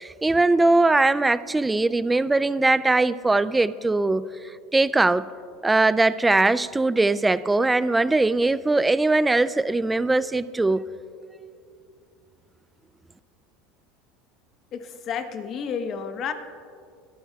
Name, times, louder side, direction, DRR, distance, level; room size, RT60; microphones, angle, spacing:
voice 1, 0.0-4.3 4.7-5.3 5.6-10.9, right 2 dB, 10° right, 16 dB, 0.3 m, -21 dB
voice 2, 14.7-16.3, left 6 dB, 40° left, 8 dB, 1.0 m, -31 dB
22.0 x 13.5 x 2.3 m, 2.4 s
supercardioid pair, 135°, 0 cm